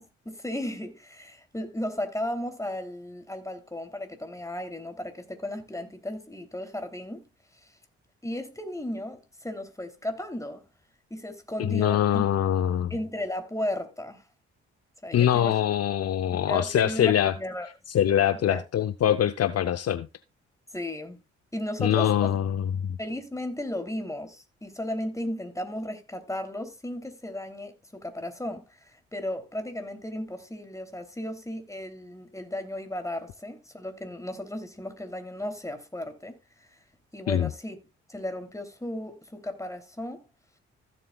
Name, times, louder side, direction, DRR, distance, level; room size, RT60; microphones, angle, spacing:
voice 1, 0.0-7.3 8.2-10.6 11.1-12.3 12.6-12.7 12.9-14.2 15.0-15.6 16.3-17.7 18.3-18.6 20.7-21.2 21.5-22.3 23.0-36.4 37.1-37.8 38.1-40.2, left 1 dB, 10° left, 3.0 m, -35 dB
voice 2, 11.6-12.9 15.1-17.3 17.9-20.1 21.8-23.0 37.3-37.5, left 10 dB, 50° left, 0.7 m, -24 dB
15.5 x 7.6 x 2.3 m
hypercardioid pair, 45°, 32 cm